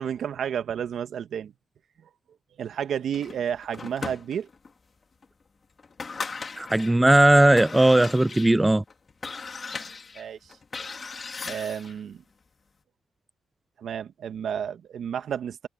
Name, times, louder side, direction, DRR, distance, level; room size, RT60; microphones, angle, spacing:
voice 1, 0.0-1.5 2.0-2.1 2.6-4.5 10.1-10.6 11.4-12.2 13.8-15.7, right 8 dB, 60° right, 1.4 m, -31 dB
sound 1, 3.1-4.7 5.2-5.3 5.8-7.0 7.4-12.0, left 4 dB, 35° left, 2.5 m, -38 dB
voice 2, 6.6-8.8, right 1 dB, 10° right, 0.3 m, -18 dB
cardioid pair, 90°, 0 cm